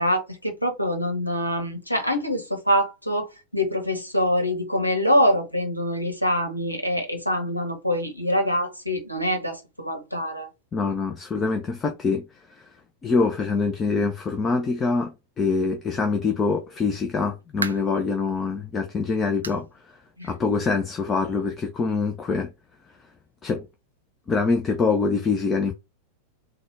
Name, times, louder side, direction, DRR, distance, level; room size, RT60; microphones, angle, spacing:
voice 1, 0.0-10.5 20.2-20.3, equal, 90° left, 1.1 m, -25 dB
voice 2, 10.7-12.2 13.0-19.7 20.2-22.5 23.4-23.7 24.3-25.7, left 4 dB, 20° left, 0.6 m, -24 dB
sound 1, 17.2-18.0 18.5-18.7 19.4-19.7 20.0-20.1 20.6-20.7 21.8-21.9, right 4 dB, 75° right, 0.4 m, -34 dB
3.9 x 2.3 x 3.2 m
figure-of-eight pair, 90°, 0 cm